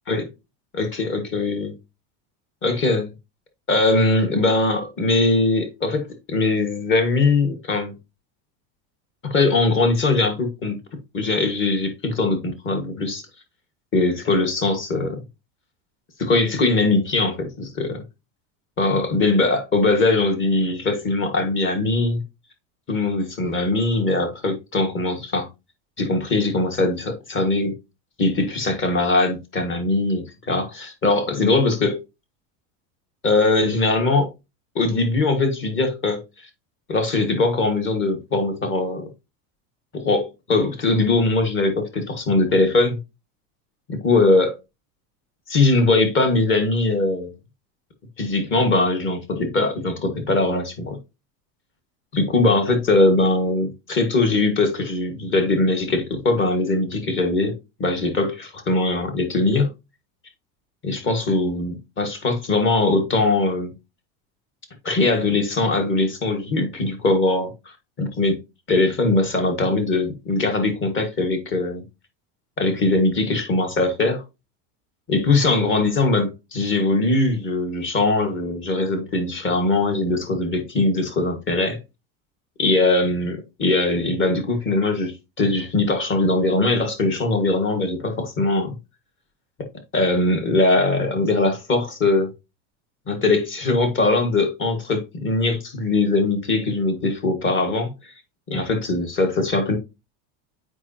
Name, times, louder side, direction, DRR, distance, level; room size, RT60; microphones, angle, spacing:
voice 1, 0.7-1.7 2.6-3.1 3.7-7.9 9.2-10.8 11.1-13.2 13.9-15.2 16.2-18.0 18.8-22.2 22.9-25.5 26.0-27.7 28.2-32.0 33.2-34.3 34.7-36.2 36.9-39.1 39.9-43.0 43.9-44.6 45.5-47.3 48.2-51.0 52.1-59.7 60.8-63.7 64.8-68.4 68.7-71.8 72.6-74.2 75.1-81.8 82.6-88.7 89.9-92.3 93.1-98.1 98.5-99.8, left 2 dB, 30° left, 1.7 m, -21 dB
8.0 x 5.1 x 2.8 m
supercardioid pair, 140°, 41 cm